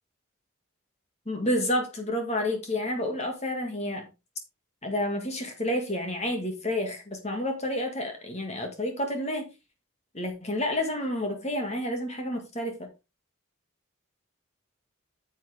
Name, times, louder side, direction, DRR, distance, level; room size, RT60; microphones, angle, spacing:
voice 1, 1.3-4.1 4.8-9.5 10.1-12.9, left 1 dB, 30° left, 2.2 m, -30 dB
8.9 x 7.7 x 3.6 m
head